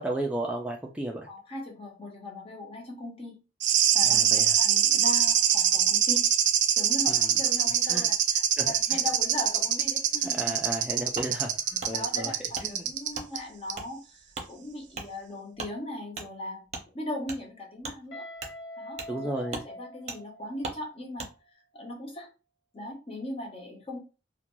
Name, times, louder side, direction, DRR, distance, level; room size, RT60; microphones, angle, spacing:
voice 1, 0.0-1.3 4.0-4.6 7.9-8.1 8.6-8.7 10.3-12.3 12.6-12.9 19.1-19.6, right 1 dB, 5° right, 0 dB, 0.3 m, -33 dB
voice 2, 1.3-3.4 3.9-6.3 6.8-10.5 11.9-16.6 16.9-18.3 18.8-21.3 21.7-22.3 22.7-24.0, left 1 dB, 35° left, 1 dB, 0.7 m, -38 dB
sound 1, 3.6-13.4 13.7-13.8, right 10 dB, 75° right, 0.4 m, -24 dB
Wood, 11.1-11.3 11.8-11.9 12.5-12.7 13.1-13.3 13.7-13.9 14.3-14.5 14.9-15.1 15.5-15.7 16.1-16.3 16.7-16.8 17.2-17.4 17.8-18.0 18.4-18.5 19.0-19.1 19.5-19.7 20.1-20.2 20.6-20.8 21.2-21.3, right 3 dB, 40° right, 0.6 m, -38 dB
Guitar, 18.1-20.9, left 1 dB, 75° left, 0.9 m, -44 dB
2.4 x 2.2 x 3.0 m, 0.32 s
head